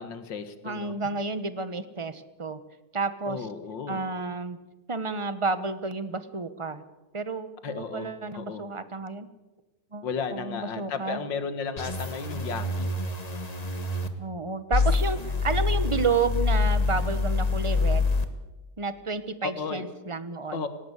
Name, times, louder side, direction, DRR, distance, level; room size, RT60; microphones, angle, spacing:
voice 1, 0.0-1.0 3.3-4.0 7.6-8.7 10.0-13.0 19.4-19.9 20.5-20.7, left 5 dB, 85° left, 10 dB, 2.3 m, -34 dB
voice 2, 0.6-2.6 2.9-3.4 3.9-4.6 4.9-6.8 7.1-9.3 9.9-10.1 10.3-11.2 14.2-18.1 18.8-20.7, right 4 dB, 25° right, 13 dB, 0.8 m, -31 dB
sound 1, 11.8-14.1 14.7-18.3, left 3 dB, 25° left, 1.4 m, -26 dB
18.5 x 18.0 x 8.2 m, 1.1 s
omnidirectional pair, 1.9 m